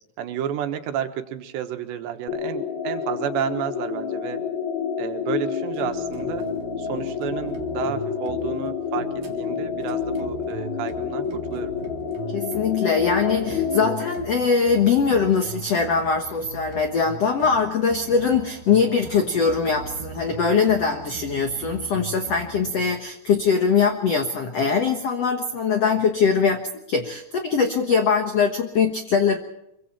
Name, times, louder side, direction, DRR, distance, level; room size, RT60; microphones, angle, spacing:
voice 1, 0.2-4.5 5.0-6.5 6.8-9.1 9.4-11.7, right 9 dB, 80° right, 7 dB, 3.5 m, -31 dB
sound 1, 2.3-14.2, left 7 dB, 60° left, 5.9 m, -29 dB
sound 2, 5.8-23.0, right 7 dB, 55° right, 3.3 m, -40 dB
voice 2, 12.3-26.6 26.9-29.4, left 5 dB, 75° left, 5 dB, 1.4 m, -22 dB
25.0 x 24.0 x 4.4 m, 0.80 s
omnidirectional pair, 5.1 m